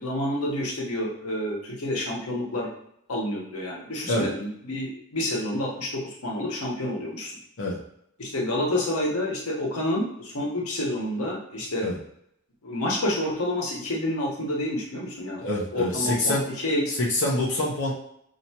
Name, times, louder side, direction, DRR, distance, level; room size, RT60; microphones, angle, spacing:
voice 1, 0.0-2.7 3.1-7.4 8.2-11.8 12.6-15.4 15.7-16.9, left 1 dB, 85° left, -2 dB, 1.1 m, -29 dB
voice 2, 15.4-16.4 16.9-17.9, left 1 dB, 60° left, -5 dB, 0.7 m, -25 dB
5.5 x 2.8 x 2.8 m, 0.74 s
head